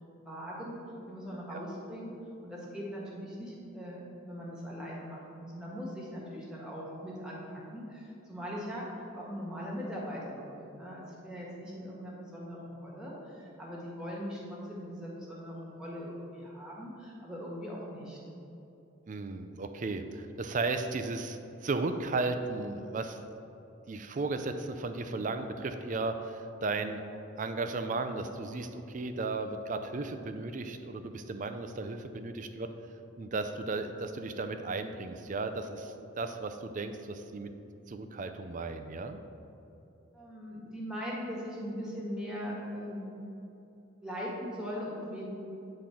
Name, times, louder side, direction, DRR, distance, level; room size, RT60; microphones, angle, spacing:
voice 1, 0.2-2.2 2.4-4.0 4.3-18.2 40.1-43.1 44.0-45.3, equal, 5° right, -5 dB, 1.4 m, -40 dB
voice 2, 19.1-23.2 23.9-27.0 27.4-32.7 33.2-37.5 37.9-39.2, right 3 dB, 40° right, 8 dB, 0.4 m, -35 dB
8.5 x 3.8 x 5.9 m, 2.9 s
head